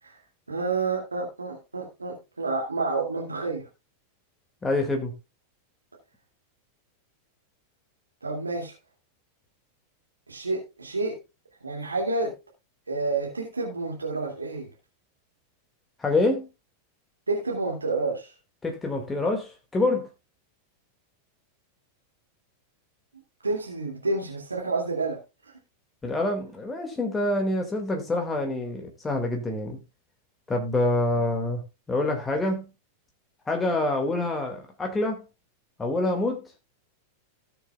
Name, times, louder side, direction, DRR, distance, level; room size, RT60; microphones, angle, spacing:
voice 1, 0.5-3.7 8.2-8.7 10.3-11.2 11.6-12.3 12.9-14.7 17.3-18.3 23.4-25.2 25.4-25.5, right 3 dB, 80° right, 2.3 m, -29 dB
voice 2, 4.6-5.1 16.0-16.5 18.6-20.1 26.0-29.8 30.5-31.6 31.9-32.7 33.5-35.2 35.8-36.4, left 2 dB, 15° left, 2.0 m, -26 dB
18.0 x 7.0 x 2.3 m
figure-of-eight pair, 90°, 0 cm